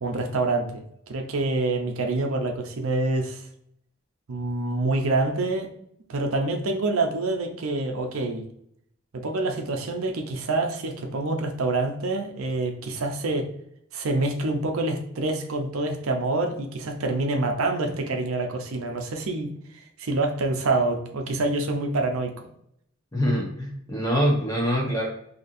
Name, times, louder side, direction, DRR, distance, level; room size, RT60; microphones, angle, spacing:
voice 1, 0.0-3.5 4.3-5.7 6.1-8.5 9.1-13.5 13.9-22.3, right 2 dB, 85° right, 4 dB, 0.6 m, -26 dB
voice 2, 23.1-25.1, equal, 15° left, -2 dB, 0.9 m, -24 dB
4.1 x 2.8 x 2.5 m, 0.73 s
head